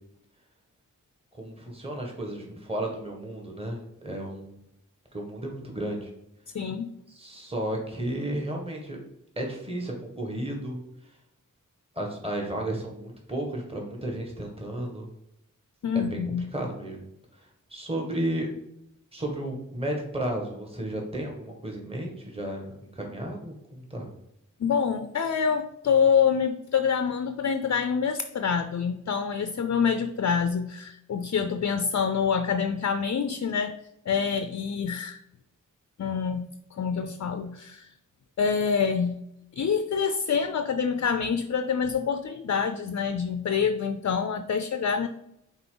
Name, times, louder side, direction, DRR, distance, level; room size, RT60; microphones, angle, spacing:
voice 1, 1.3-4.6 5.1-6.1 7.1-9.0 9.4-10.8 11.9-15.1 15.9-16.2 16.5-17.0 17.3-18.5 19.1-24.1, right 1 dB, 15° right, 0 dB, 1.5 m, -33 dB
voice 2, 6.5-6.9 15.8-16.5 24.6-33.7 34.1-35.2 36.0-37.9 38.4-39.2 39.6-45.1, left 6 dB, 50° left, 9 dB, 0.5 m, -26 dB
5.9 x 4.2 x 3.9 m, 0.80 s
wide cardioid pair, 50°, 33 cm